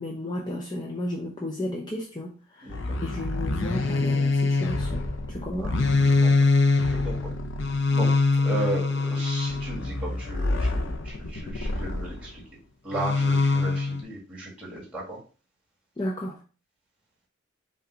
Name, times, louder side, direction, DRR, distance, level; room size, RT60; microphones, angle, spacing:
voice 1, 0.0-5.7 8.6-8.7 16.0-16.4, left 1 dB, 20° left, -3 dB, 0.6 m, -33 dB
sound 1, 2.7-12.3 12.9-14.0, left 3 dB, 70° left, 0.7 m, -24 dB
voice 2, 6.0-6.5 6.9-7.3 7.9-8.1 8.4-12.4 12.8-15.2, right 1 dB, 5° right, -6 dB, 2.0 m, -35 dB
5.5 x 2.4 x 3.9 m, 0.36 s
head